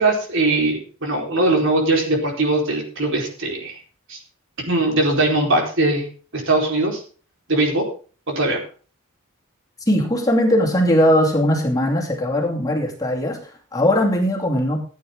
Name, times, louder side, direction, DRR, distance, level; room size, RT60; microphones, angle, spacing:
voice 1, 0.0-3.8 4.1-4.2 4.7-6.1 6.3-7.0 7.5-7.8 8.3-8.6, right 2 dB, 60° right, 1 dB, 4.4 m, -20 dB
voice 2, 9.9-14.8, equal, 15° left, -1 dB, 2.6 m, -19 dB
15.5 x 9.6 x 3.8 m, 0.39 s
head